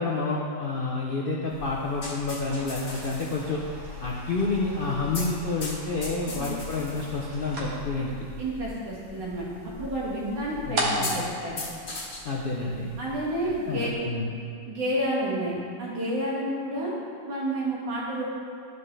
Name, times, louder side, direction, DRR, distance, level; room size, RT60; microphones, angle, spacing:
voice 1, 0.0-3.6 4.0-8.1 10.7-11.1 12.2-12.9 13.7-14.3, left 3 dB, 90° left, -2 dB, 0.4 m, -29 dB
sound 1, 1.5-13.9, left 3 dB, 55° left, 1.9 m, -40 dB
Cassette Tape Rewind, 2.3-12.7, right 1 dB, 55° right, 1.6 m, -38 dB
voice 2, 8.4-9.5 9.8-11.6 13.0-13.9 14.7-16.9 17.3-18.3, right 1 dB, 80° right, -8 dB, 2.7 m, -30 dB
12.0 x 5.3 x 3.3 m, 2.4 s
omnidirectional pair, 1.9 m